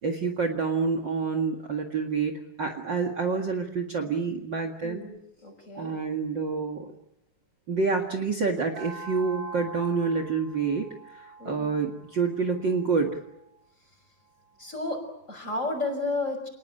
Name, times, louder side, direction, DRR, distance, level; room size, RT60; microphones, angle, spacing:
voice 1, 0.0-2.3 2.6-5.1 5.8-6.9 7.7-13.2, right 4 dB, 40° right, 6 dB, 2.4 m, -28 dB
voice 2, 4.8-5.9 11.4-11.8 14.6-16.5, left 2 dB, 25° left, 5 dB, 6.1 m, -32 dB
sound 1, 8.7-13.3, right 3 dB, 65° right, 9.0 m, -44 dB
28.5 x 20.0 x 8.9 m, 0.84 s
omnidirectional pair, 3.3 m